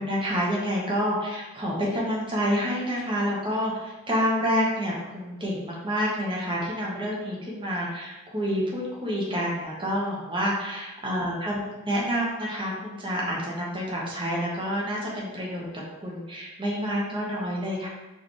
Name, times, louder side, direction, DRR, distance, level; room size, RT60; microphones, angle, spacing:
voice 1, 0.0-15.7 16.0-17.9, equal, 25° right, -4 dB, 1.2 m, -28 dB
4.8 x 3.5 x 3.1 m, 1.1 s
head